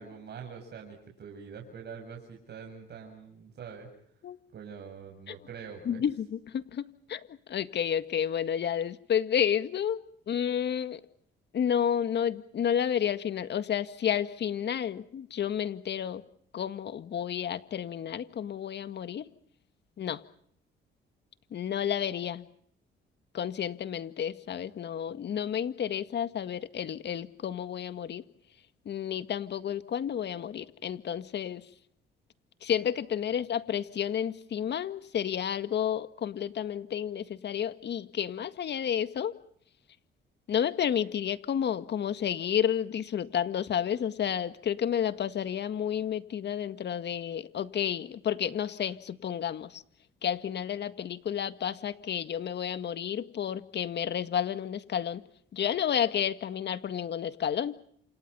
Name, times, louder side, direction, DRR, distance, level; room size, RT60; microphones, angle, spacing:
voice 1, 0.0-3.9 4.5-6.1, right 6 dB, 60° right, 1 dB, 7.1 m, -44 dB
voice 2, 5.9-10.0 10.3-11.0 11.5-16.2 16.5-19.3 20.0-20.2 21.5-22.5 23.3-28.2 28.9-31.7 32.6-39.3 40.5-49.8 50.2-55.2 55.5-57.8, left 9 dB, 60° left, 12 dB, 1.9 m, -31 dB
28.5 x 28.0 x 5.6 m, 0.65 s
cardioid pair, 90°, 20 cm